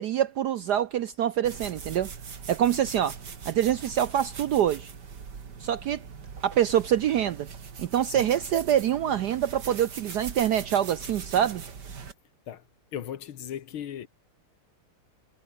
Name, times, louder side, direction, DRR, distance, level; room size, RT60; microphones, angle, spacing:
voice 1, 0.0-2.1 2.5-3.2 3.5-4.9 5.6-6.0 6.4-7.5 7.8-11.6, right 10 dB, 70° right, 1.0 m, -25 dB
sound 1, 1.4-12.1, right 6 dB, 50° right, 2.7 m, -41 dB
voice 2, 12.9-14.1, left 10 dB, 75° left, 2.1 m, -37 dB
omnidirectional pair, 2.4 m